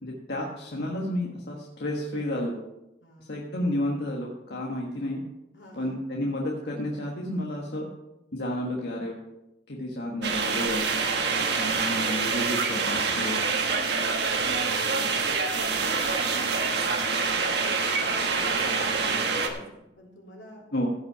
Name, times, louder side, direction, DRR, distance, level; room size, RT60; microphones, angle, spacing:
voice 1, 0.0-2.6 3.2-5.2 5.7-7.9 8.3-9.2 9.7-10.9 11.6-13.4 20.7-20.9, left 1 dB, 60° left, -2 dB, 1.5 m, -31 dB
voice 2, 3.0-3.6 5.5-6.1 11.2-11.5 12.0-12.1 13.7-17.2 18.0-20.6, equal, 85° left, -2 dB, 3.7 m, -45 dB
sound 1, 10.2-19.5, right 4 dB, 60° right, 1.3 m, -26 dB
15.5 x 5.7 x 5.6 m, 0.93 s
head